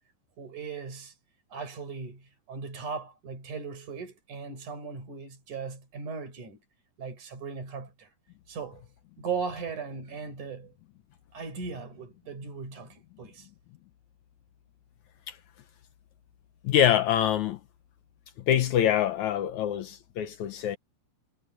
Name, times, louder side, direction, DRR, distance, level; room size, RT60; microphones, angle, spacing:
voice 1, 0.4-1.1 1.5-6.6 7.0-8.1 8.5-8.8 9.2-10.7 11.3-13.5, right 5 dB, 55° right, 7.4 m, -38 dB
voice 2, 16.6-17.6 18.5-20.8, left 10 dB, 70° left, 1.9 m, -25 dB
omnidirectional pair, 4.2 m